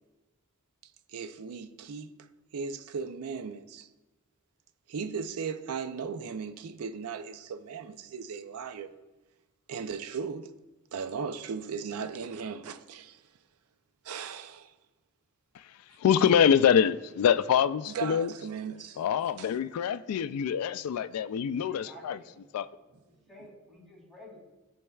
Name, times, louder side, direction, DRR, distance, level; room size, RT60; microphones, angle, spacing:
voice 1, 1.1-2.1 2.5-3.9 4.9-8.9 9.7-10.5 10.9-13.2 14.0-14.7 17.9-19.0 19.4-19.5, right 5 dB, 90° right, 0.5 m, -37 dB
voice 2, 16.0-18.3 19.0-22.2 22.5-22.7, left 8 dB, 90° left, 0.3 m, -25 dB
voice 3, 21.7-22.4 22.7-24.4, left 1 dB, ahead, 2.6 m, -52 dB
14.0 x 5.3 x 2.3 m
head